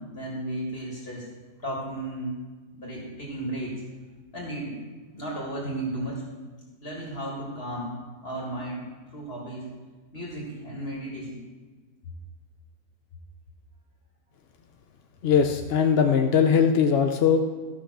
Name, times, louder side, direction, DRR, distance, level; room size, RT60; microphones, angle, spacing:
voice 1, 0.1-1.3 1.6-2.4 2.7-3.8 4.3-4.9 5.1-6.3 6.8-7.9 8.2-9.7 10.1-11.4, right 1 dB, 40° left, -4 dB, 2.4 m, -34 dB
voice 2, 15.2-17.4, left 7 dB, 60° left, 5 dB, 0.7 m, -20 dB
13.0 x 5.9 x 6.2 m, 1.3 s
omnidirectional pair, 1.7 m